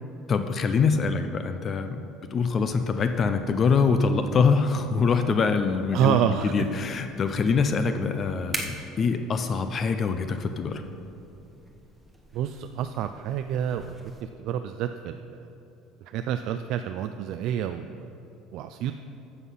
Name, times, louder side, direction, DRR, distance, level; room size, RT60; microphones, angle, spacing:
voice 1, 0.3-2.0 2.3-10.8, left 5 dB, 25° left, 8 dB, 0.4 m, -24 dB
sound 1, 2.3-14.2, right 1 dB, 5° right, 0.9 m, -45 dB
voice 2, 5.9-6.5 12.3-14.1 14.4-15.2 16.1-18.1 18.5-18.9, right 10 dB, 50° right, 8 dB, 0.3 m, -28 dB
14.5 x 5.8 x 5.5 m, 2.8 s
cardioid pair, 180°, 0 cm